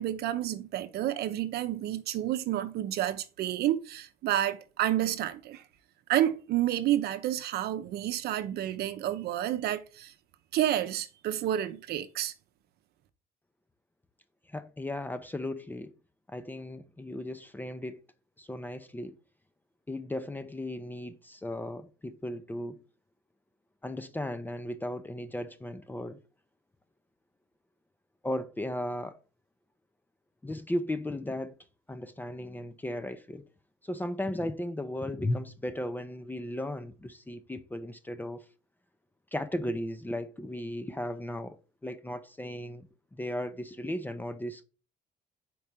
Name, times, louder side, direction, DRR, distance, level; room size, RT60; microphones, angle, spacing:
voice 1, 0.0-5.6 6.1-10.1 10.5-12.3, right 12 dB, 70° right, 0.7 m, -30 dB
voice 2, 14.5-15.9 16.3-18.0 18.4-19.2 19.9-22.8 23.8-26.2 28.2-29.2 30.4-31.5 31.9-33.4 33.8-38.4 39.3-41.6 41.8-44.6, left 1 dB, 10° left, 0.5 m, -36 dB
4.7 x 4.2 x 5.0 m
cardioid pair, 110°, 17 cm